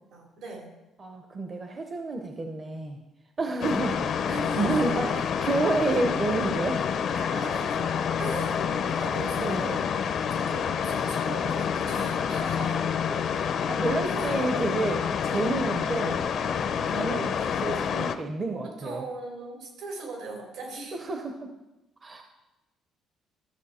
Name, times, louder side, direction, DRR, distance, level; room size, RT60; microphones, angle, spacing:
voice 1, 0.1-0.7 4.3-5.2 7.1-7.9 8.2-9.8 10.3-12.9 14.1-14.4 18.6-21.0, right 3 dB, 75° right, -1 dB, 3.6 m, -39 dB
voice 2, 1.0-3.0 3.4-6.8 9.4-9.6 13.3-16.2 16.8-19.0 20.9-21.5 22.0-22.2, right 3 dB, 25° right, 4 dB, 0.8 m, -30 dB
sound 1, 3.6-18.2, left 7 dB, 50° left, 0.6 m, -28 dB
13.5 x 7.1 x 4.3 m, 1.0 s
cardioid pair, 155°, 0 cm